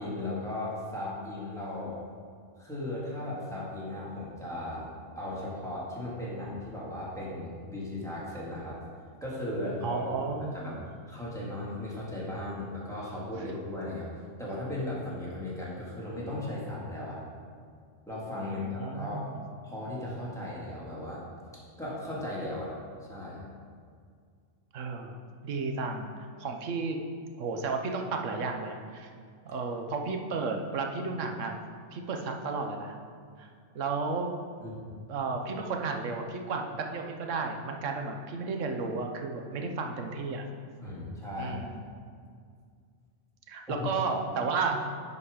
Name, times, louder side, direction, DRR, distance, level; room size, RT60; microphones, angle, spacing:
voice 1, 0.0-2.0 2.6-4.9 5.1-8.8 9.2-10.7 11.1-14.1 14.4-17.3 18.1-19.2 19.6-21.2 21.8-22.8 23.1-23.5 34.6-34.9 40.8-41.6 43.7-44.0, left 1 dB, ahead, -7 dB, 2.0 m, -36 dB
voice 2, 9.8-10.9 13.4-13.5 18.4-19.4 24.7-27.0 27.4-29.1 29.4-31.6 31.9-33.0 33.4-33.5 33.7-34.3 35.1-36.6 36.9-40.5 41.4-41.7 43.5-44.8, right 4 dB, 70° right, 3 dB, 1.2 m, -33 dB
10.5 x 4.8 x 5.0 m, 2.1 s
omnidirectional pair, 1.4 m